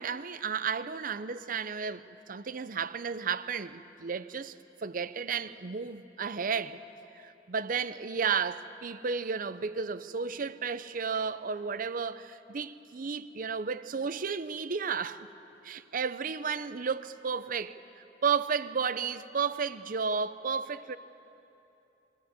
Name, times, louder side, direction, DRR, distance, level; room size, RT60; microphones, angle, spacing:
voice 1, 0.0-4.5 4.8-6.8 7.1-15.3 15.6-21.0, right 6 dB, 50° right, 0.6 m, -33 dB
23.0 x 15.0 x 8.8 m
head